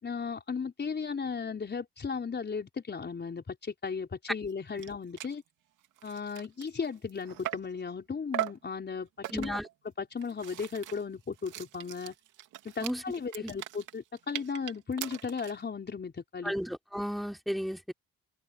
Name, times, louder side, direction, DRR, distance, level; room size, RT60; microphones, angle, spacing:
voice 1, 0.0-5.4 6.0-12.1 12.6-16.5, left 5 dB, 35° left, 4.4 m, -36 dB
sound 1, 4.5-4.6 4.8-4.9 5.2-5.4 5.8-7.8 8.3-8.7 9.2-9.7 10.2-15.6, right 14 dB, 90° right, 2.5 m, -40 dB
voice 2, 9.3-9.6 12.8-13.0 13.4-13.5 16.4-17.9, equal, ahead, 4.2 m, -33 dB
cardioid pair, 90°, 30 cm